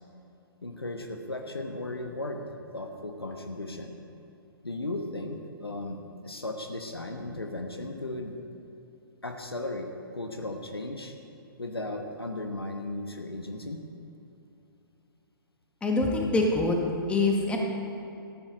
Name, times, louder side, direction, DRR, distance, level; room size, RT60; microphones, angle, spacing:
voice 1, 0.6-3.9 4.6-6.0 6.2-8.3 9.2-9.9 10.1-11.1 11.6-13.8, left 2 dB, 90° left, 4 dB, 1.2 m, -36 dB
voice 2, 15.8-17.6, left 2 dB, 10° left, 0 dB, 1.6 m, -25 dB
13.5 x 13.0 x 3.9 m, 2.9 s
figure-of-eight pair, 125°, 12 cm